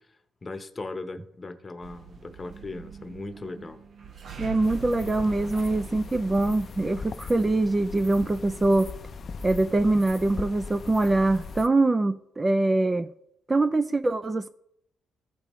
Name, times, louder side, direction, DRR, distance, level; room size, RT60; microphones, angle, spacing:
voice 1, 0.4-3.8, left 3 dB, 25° left, 0.9 m, -38 dB
sound 1, 1.8-10.6, right 6 dB, 55° right, 0.8 m, -44 dB
voice 2, 4.4-8.9 9.4-13.1 13.5-14.5, right 2 dB, 20° right, 0.4 m, -23 dB
sound 2, 4.6-11.7, left 4 dB, 45° left, 0.5 m, -39 dB
14.0 x 5.2 x 3.1 m
cardioid pair, 90°, 0 cm